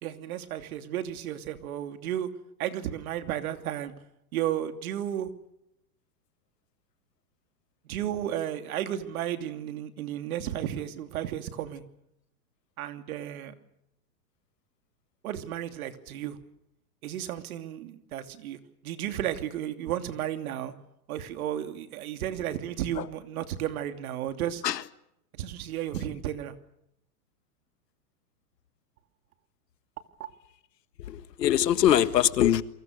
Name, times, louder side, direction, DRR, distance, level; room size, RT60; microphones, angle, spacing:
voice 1, 0.0-2.3 2.6-3.9 4.3-5.3 7.8-11.8 12.8-13.5 15.2-16.4 17.0-20.7 21.1-24.6 25.3-26.6, right 11 dB, 60° right, 2.9 m, -33 dB
voice 2, 31.0-32.6, left 11 dB, 85° left, 1.7 m, -23 dB
29.0 x 24.0 x 6.7 m
hypercardioid pair, 145°, 48 cm